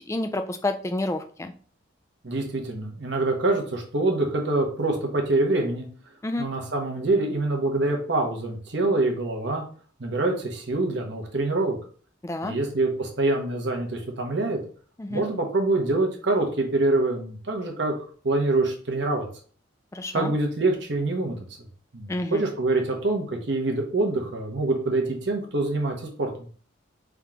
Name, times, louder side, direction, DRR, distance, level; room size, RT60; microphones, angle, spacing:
voice 1, 0.0-1.5 6.2-6.5 12.2-12.5 15.0-15.2 19.9-20.3 22.1-22.4, left 2 dB, 15° left, 7 dB, 0.3 m, -29 dB
voice 2, 2.2-5.9 6.4-9.6 10.0-11.8 12.4-14.6 15.1-17.9 18.2-19.3 20.1-21.4 21.9-26.3, right 2 dB, 60° right, 2 dB, 1.0 m, -25 dB
3.6 x 2.9 x 3.6 m, 0.43 s
head